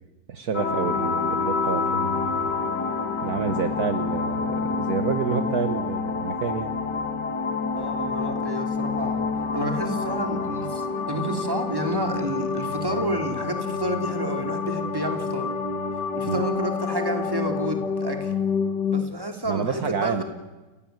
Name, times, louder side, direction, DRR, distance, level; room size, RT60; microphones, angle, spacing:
voice 1, 0.3-2.4 3.2-6.7 16.3-16.4 19.5-20.2, right 6 dB, 65° right, 9 dB, 1.8 m, -28 dB
sound 1, 0.5-19.0, left 4 dB, 80° left, 2.5 m, -28 dB
voice 2, 3.5-3.8 7.7-9.3 9.5-15.5 16.1-18.3 18.9-20.2, right 1 dB, 15° right, 5 dB, 3.2 m, -30 dB
29.0 x 17.5 x 9.4 m, 1.2 s
omnidirectional pair, 1.8 m